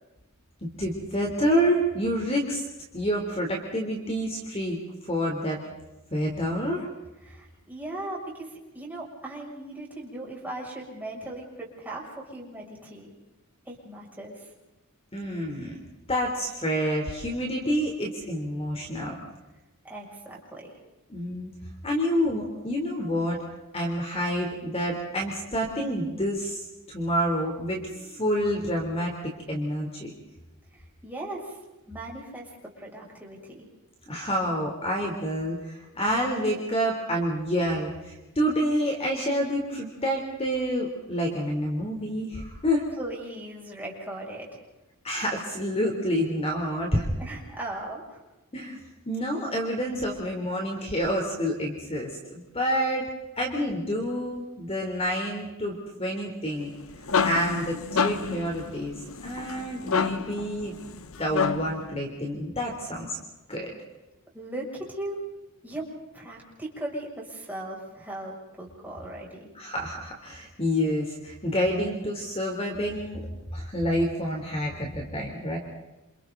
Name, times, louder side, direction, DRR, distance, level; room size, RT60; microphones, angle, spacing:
voice 1, 0.6-2.6 2.9-4.8 5.0-5.6 6.1-6.9 15.1-15.8 16.1-19.2 21.1-21.5 21.8-23.4 23.7-26.6 26.9-30.1 34.1-42.8 45.0-47.0 48.5-48.8 49.0-53.1 53.4-55.7 56.0-56.7 57.2-58.9 59.2-60.8 61.2-63.2 63.5-63.7 69.5-73.3 73.5-75.6, equal, 25° left, 1 dB, 3.5 m, -28 dB
voice 2, 7.2-8.5 8.7-13.1 13.7-14.5 19.8-20.7 30.7-31.6 31.9-32.5 32.8-33.7 43.0-44.6 47.2-48.2 64.3-65.2 65.6-65.8 66.1-69.5, right 1 dB, 10° right, -3 dB, 7.0 m, -38 dB
sound 1, 56.6-61.9, left 6 dB, 65° left, 1.0 m, -29 dB
28.5 x 28.5 x 4.0 m, 1.0 s
head